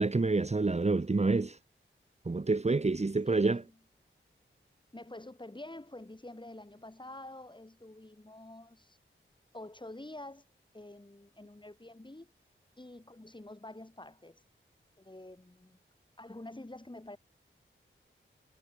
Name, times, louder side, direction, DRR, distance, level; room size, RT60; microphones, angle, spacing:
voice 1, 0.0-1.6 2.3-3.6, right 3 dB, 30° right, 1.1 m, -27 dB
voice 2, 3.2-3.7 4.9-9.0 9.5-10.5 10.7-12.3 12.8-14.4 15.0-15.8 16.2-17.2, left 1 dB, 20° left, 7.7 m, -48 dB
wide cardioid pair, 70°, 21 cm